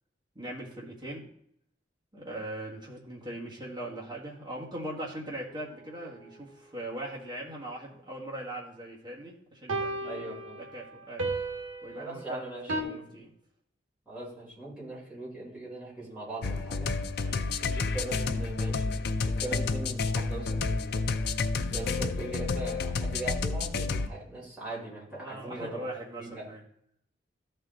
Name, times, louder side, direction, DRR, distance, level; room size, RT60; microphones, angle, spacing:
voice 1, 0.4-1.3 2.1-10.2 10.7-11.3 11.8-13.3 17.2-17.4 25.1-26.6, right 1 dB, 25° right, -4 dB, 1.8 m, -40 dB
sound 1, 5.5-5.6 9.7-12.8, right 2 dB, 75° right, 1.2 m, -35 dB
voice 2, 10.0-10.6 11.9-13.3 14.1-16.9 17.6-21.1 21.7-26.4, right 2 dB, 5° right, -8 dB, 4.0 m, -40 dB
sound 2, 16.4-24.1, left 4 dB, 55° left, 0.4 m, -30 dB
13.0 x 4.5 x 3.8 m, 0.70 s
head